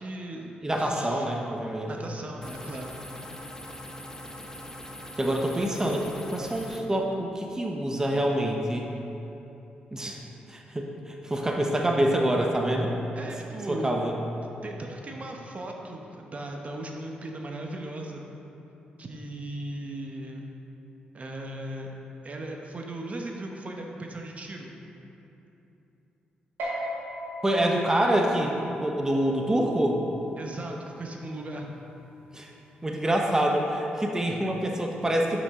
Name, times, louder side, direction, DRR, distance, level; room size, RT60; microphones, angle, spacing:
voice 1, 0.0-1.3 1.9-3.0 13.2-14.0 14.6-18.2 19.0-20.5 21.1-21.9 22.2-24.7 30.4-31.7, right 1 dB, 45° right, 1 dB, 0.9 m, -37 dB
voice 2, 0.6-1.9 5.2-8.9 9.9-10.2 10.5-12.9 13.7-14.1 27.4-28.5 28.8-30.0 32.3-32.5 32.8-35.4, right 1 dB, 15° right, 0 dB, 0.9 m, -26 dB
sound 1, 2.4-6.8, left 1 dB, 20° left, 0.8 m, -42 dB
sound 2, 26.6-33.4, equal, 90° right, 1.7 m, -40 dB
10.5 x 5.3 x 3.7 m, 3.0 s
cardioid pair, 60°, 3 cm